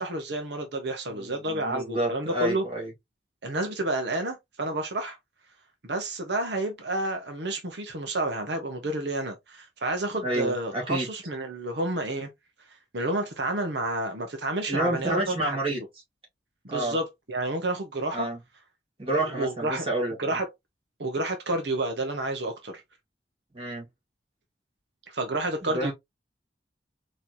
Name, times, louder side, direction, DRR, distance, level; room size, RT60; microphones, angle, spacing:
voice 1, 0.0-2.6 3.4-5.2 5.8-12.3 12.9-15.9 16.6-18.3 19.2-19.9 20.2-20.4 21.0-22.8 25.1-25.9, right 2 dB, 80° right, 1.1 m, -30 dB
voice 2, 1.1-2.9 10.2-11.1 14.7-15.8 16.7-17.0 18.1-18.4 19.0-20.3 23.5-23.9 25.6-25.9, right 1 dB, 30° right, 2.2 m, -29 dB
4.4 x 3.2 x 2.7 m
head